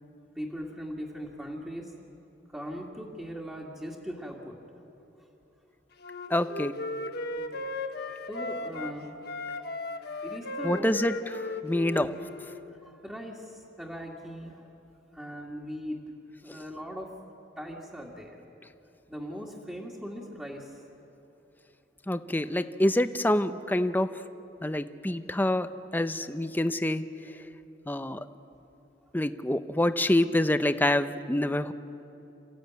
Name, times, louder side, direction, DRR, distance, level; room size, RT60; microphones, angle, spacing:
voice 1, 0.4-1.9 2.5-4.6 6.4-6.5 7.3-7.7 8.0-9.1 10.2-11.0 11.9-12.1 12.7-14.7 15.1-16.0 16.4-17.1 17.6-18.4 19.1-20.7, equal, 5° right, -4 dB, 2.0 m, -40 dB
Wind instrument woodwind instrument, 6.0-8.9 9.2-12.6, left 2 dB, 60° left, 1.3 m, -36 dB
voice 2, 6.3-6.7 10.6-11.1 11.6-12.1 22.1-24.1 24.6-27.0 27.9-28.2 29.1-31.7, left 1 dB, 10° left, 11 dB, 0.7 m, -26 dB
27.5 x 15.0 x 9.4 m, 3.0 s
head